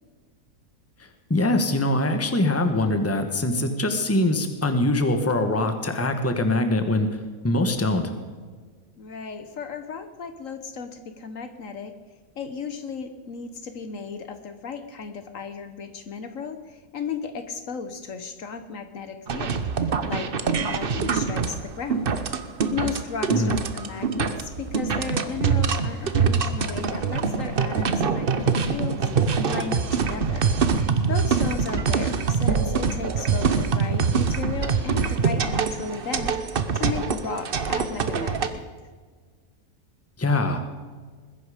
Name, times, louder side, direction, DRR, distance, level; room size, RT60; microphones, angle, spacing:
voice 1, 1.0-8.0 23.3-23.5 40.2-40.8, left 1 dB, 10° left, 7 dB, 1.2 m, -23 dB
voice 2, 9.0-12.0 12.4-22.1 22.7-30.5 31.1-38.6, left 5 dB, 60° left, 9 dB, 1.3 m, -35 dB
sound 1, 19.3-38.5, right 5 dB, 45° right, 0.9 m, -24 dB
20.5 x 10.5 x 5.0 m, 1.5 s
omnidirectional pair, 1.6 m